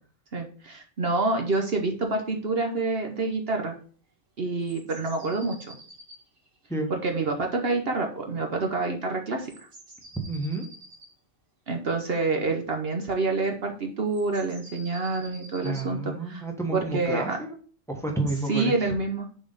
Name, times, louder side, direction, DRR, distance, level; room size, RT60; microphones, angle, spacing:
voice 1, 0.3-3.7 4.4-5.8 6.9-9.5 11.7-16.4 16.7-17.4 18.5-19.3, right 3 dB, 55° right, 3 dB, 1.1 m, -27 dB
sound 1, 4.6-7.4 9.4-11.1 14.1-15.9, right 1 dB, 75° right, 2.5 m, -48 dB
voice 2, 10.3-10.7 15.6-17.5 17.9-18.9, right 2 dB, ahead, 2 dB, 1.1 m, -30 dB
7.0 x 4.2 x 4.0 m, 0.44 s
omnidirectional pair, 1.3 m